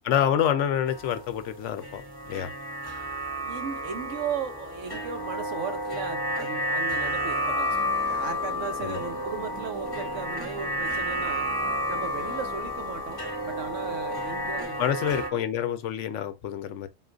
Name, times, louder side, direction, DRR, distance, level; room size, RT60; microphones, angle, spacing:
voice 1, 0.0-2.0 2.3-2.5 8.8-9.0 14.8-16.9, left 9 dB, 80° left, 1.0 m, -27 dB
sound 1, 0.9-15.3, equal, 20° left, 1.2 m, -31 dB
voice 2, 3.4-11.5 11.9-15.4, right 6 dB, 85° right, 1.2 m, -37 dB
sound 2, 7.7-14.7, right 2 dB, 35° right, 0.3 m, -46 dB
4.3 x 2.4 x 3.8 m
omnidirectional pair, 1.3 m